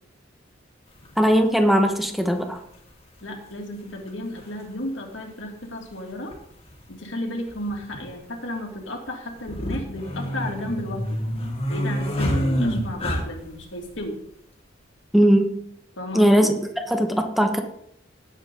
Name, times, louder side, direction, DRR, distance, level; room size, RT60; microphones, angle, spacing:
sound 1, 1.0-1.1 2.5-2.6 4.1-4.2 4.4-4.5 6.3-6.4 6.7-6.8 7.5-8.0 9.4-13.6, equal, 30° left, 2.6 m, -26 dB
voice 1, 1.2-2.6 15.1-15.6 16.1-16.5 16.9-17.6, equal, ahead, 5 dB, 1.3 m, -19 dB
voice 2, 3.2-6.3 6.9-11.2 11.7-14.2 16.0-16.5, left 1 dB, 75° left, 1 dB, 2.8 m, -33 dB
18.0 x 8.2 x 3.9 m, 0.72 s
head